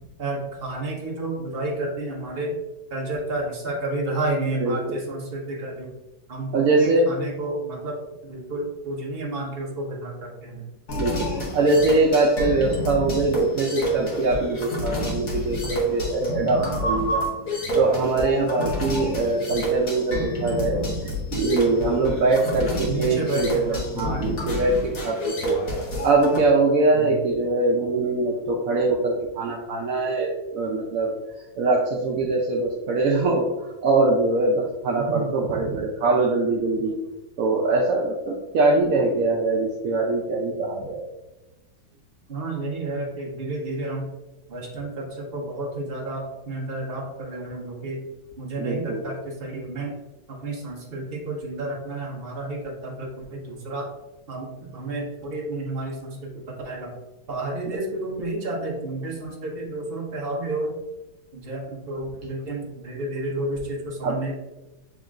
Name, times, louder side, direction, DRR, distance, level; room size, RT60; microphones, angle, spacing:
voice 1, 0.2-2.6 2.9-5.9 6.3-10.7 16.5-16.9 18.7-18.9 22.8-24.3 26.9-27.1 35.0-35.3 42.3-44.1 44.5-48.0 48.4-49.9 50.4-53.9 54.3-56.9 57.3-60.8 61.3-64.3, right 2 dB, 35° right, -3 dB, 1.1 m, -31 dB
voice 2, 4.6-5.0 6.5-7.1 11.0-17.3 17.8-20.8 21.3-25.6 26.0-37.0 37.4-41.1 48.6-49.0 57.7-57.8 64.0-64.2, right 2 dB, 70° right, -1 dB, 0.8 m, -23 dB
sound 1, 10.9-26.4, right 1 dB, 50° left, 1.4 m, -28 dB
7.3 x 2.9 x 2.4 m, 1.0 s
omnidirectional pair, 2.0 m